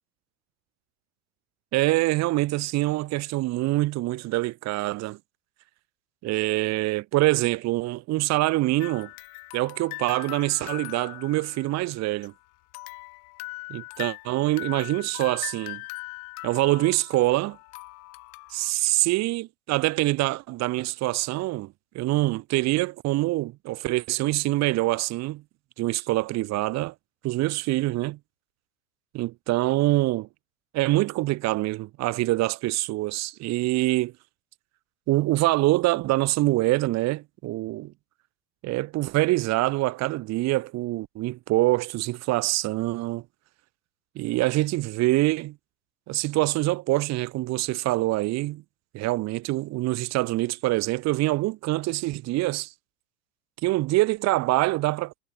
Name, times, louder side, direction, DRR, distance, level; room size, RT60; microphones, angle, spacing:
voice 1, 1.7-5.2 6.2-9.1 9.5-12.3 13.7-15.8 16.4-17.6 18.5-25.4 25.8-26.9 27.2-28.2 29.1-30.3 30.7-34.1 35.1-37.9 38.6-43.2 44.2-45.5 46.1-48.6 48.9-52.7 53.6-55.2, right 19 dB, 35° right, 0.7 m, -25 dB
sound 1, 8.8-12.3 12.7-18.7, left 28 dB, 60° left, 2.7 m, -40 dB
hypercardioid pair, 95°, 49 cm